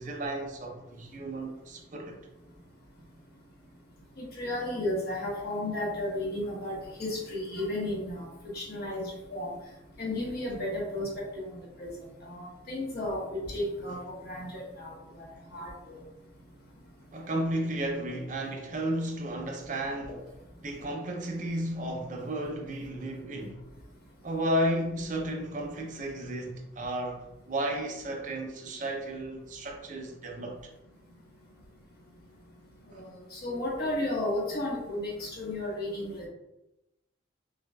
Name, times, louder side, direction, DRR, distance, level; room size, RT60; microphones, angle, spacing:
voice 1, 0.0-2.2 17.1-20.2 20.6-23.6 24.2-30.6 32.9-33.0, right 1 dB, 40° right, 0.5 m, -33 dB
voice 2, 4.2-8.3 8.5-9.5 10.0-11.2 11.8-11.9 12.2-15.3 15.5-16.0 33.0-36.3, left 1 dB, 55° left, 1.2 m, -33 dB
5.8 x 2.4 x 2.2 m
head